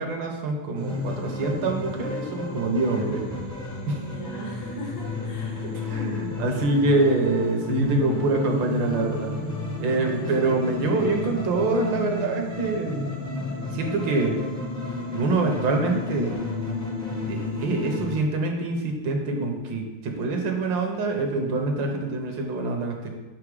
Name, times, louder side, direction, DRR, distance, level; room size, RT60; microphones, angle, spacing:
voice 1, 0.0-3.2 3.9-4.0 5.6-9.3 9.8-13.1 13.7-14.4 15.1-16.4 17.2-23.1, right 2 dB, 70° right, 2 dB, 1.6 m, -25 dB
sound 1, 0.7-18.2, left 3 dB, 15° left, 0.8 m, -32 dB
voice 2, 2.7-3.3 3.9-5.9 10.0-10.3, left 2 dB, 75° left, -1 dB, 2.1 m, -41 dB
5.6 x 4.8 x 4.7 m, 1.1 s
omnidirectional pair, 2.2 m